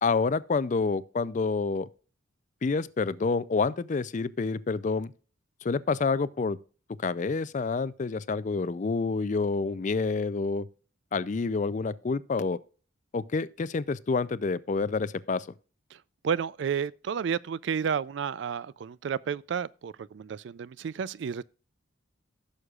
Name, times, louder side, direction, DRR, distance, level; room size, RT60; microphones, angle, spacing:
voice 1, 0.0-1.9 2.6-5.1 5.6-6.6 7.0-10.7 11.1-12.6 13.1-15.5, left 4 dB, 40° left, 0.4 m, -28 dB
voice 2, 15.9-21.4, right 7 dB, 60° right, 0.3 m, -31 dB
15.5 x 6.5 x 2.4 m
head